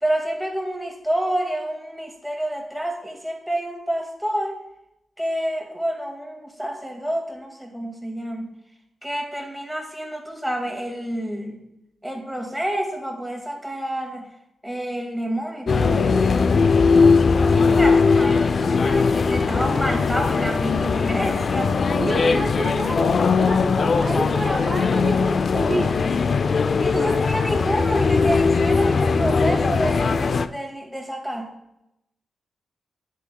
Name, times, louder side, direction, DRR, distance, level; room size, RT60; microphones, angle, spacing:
voice 1, 0.0-4.6 5.2-8.5 9.0-11.6 12.0-14.3 14.6-16.2 17.5-21.7 22.0-22.4 26.8-31.5, right 1 dB, ahead, 1 dB, 2.1 m, -28 dB
sound 1, 15.7-30.5, left 4 dB, 55° left, 0.4 m, -19 dB
voice 2, 17.5-17.9 21.9-26.0 26.9-27.2, right 2 dB, 30° right, 2 dB, 1.0 m, -29 dB
9.8 x 8.7 x 2.3 m, 0.85 s
cardioid pair, 85°, 0 cm